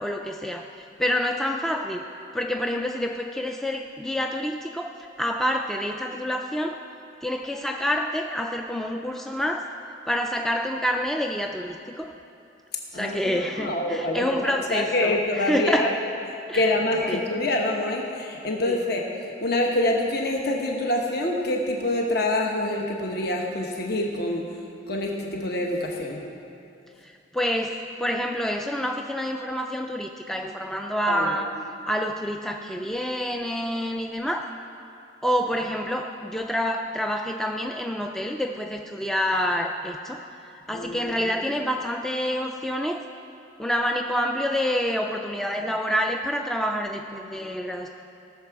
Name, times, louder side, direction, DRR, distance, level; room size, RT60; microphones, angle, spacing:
voice 1, 0.0-2.0 2.3-6.8 7.2-9.7 10.1-12.1 12.9-15.9 16.5-16.7 17.0-17.3 18.7-18.8 27.0-31.5 31.9-34.5 35.2-43.0 43.6-47.9, equal, ahead, 3 dB, 0.3 m, -28 dB
voice 2, 12.9-15.9 16.5-19.1 19.4-24.5 24.9-26.2 31.1-31.4 40.7-41.4, left 1 dB, 55° left, 0 dB, 1.0 m, -26 dB
17.0 x 6.9 x 4.6 m, 2.7 s
head